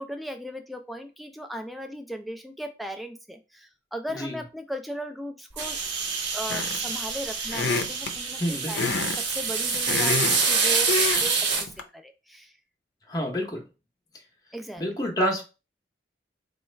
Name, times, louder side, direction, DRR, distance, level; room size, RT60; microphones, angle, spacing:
voice 1, 0.0-5.8 6.3-12.6 14.5-14.8, equal, ahead, 5 dB, 0.3 m, -37 dB
sound 1, 5.6-11.6, right 5 dB, 80° right, 1.0 m, -26 dB
sound 2, 6.5-6.9 7.5-8.1 8.7-9.2 9.5-10.5 10.9-11.3 11.6-11.8, left 4 dB, 90° left, 0.6 m, -27 dB
voice 2, 8.4-8.9 13.1-13.6 14.8-15.4, equal, 20° left, 0 dB, 0.7 m, -28 dB
4.2 x 2.3 x 3.1 m, 0.30 s
head